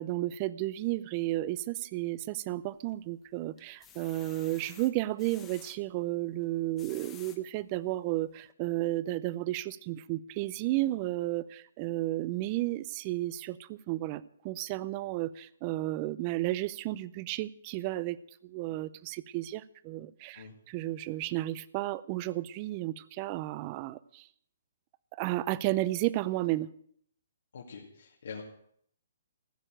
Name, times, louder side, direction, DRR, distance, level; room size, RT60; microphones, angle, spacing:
voice 1, 0.0-18.2 18.4-24.3 25.2-26.7, right 16 dB, 25° right, 19 dB, 0.5 m, -33 dB
sound 1, 2.5-3.1 3.6-5.8 6.5-7.4 8.0-8.1 8.4-8.5, left 8 dB, 15° left, 1.1 m, -53 dB
voice 2, 27.5-28.4, left 6 dB, 70° left, -1 dB, 2.4 m, -44 dB
15.5 x 6.7 x 9.0 m, 0.66 s
hypercardioid pair, 165°, 0 cm